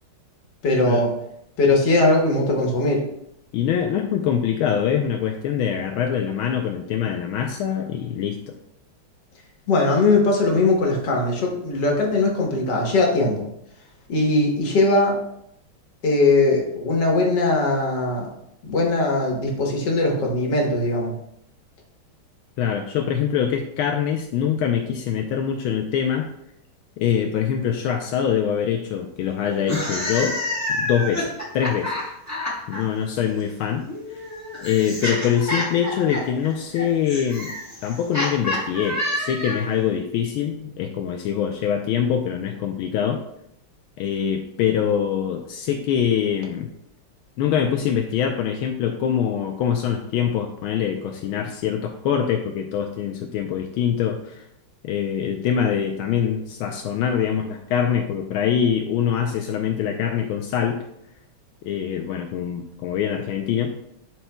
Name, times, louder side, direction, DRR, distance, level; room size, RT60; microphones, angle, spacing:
voice 1, 0.6-1.1 1.6-3.0 9.7-13.5 14.1-15.2 16.0-18.3 18.6-21.1, left 2 dB, 60° left, 0 dB, 1.8 m, -20 dB
voice 2, 3.5-8.5 22.6-26.3 27.0-30.4 30.7-31.9 32.7-33.9 34.1-34.2 34.6-37.5 37.8-43.2 44.0-46.7 47.4-54.4 54.8-60.8 61.6-63.7, left 8 dB, 80° left, 3 dB, 1.4 m, -24 dB
sound 1, 29.6-32.8 33.9-39.8, left 1 dB, 10° left, 1.3 m, -28 dB
11.0 x 4.5 x 2.3 m, 0.77 s
omnidirectional pair, 2.3 m